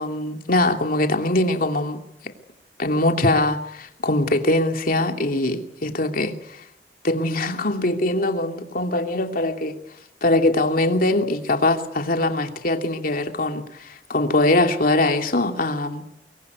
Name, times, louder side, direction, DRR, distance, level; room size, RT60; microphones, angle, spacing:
voice 1, 0.0-2.0 2.8-6.6 7.0-9.8 10.2-16.0, left 2 dB, 55° left, 2.8 m, -22 dB
23.5 x 23.5 x 9.5 m
head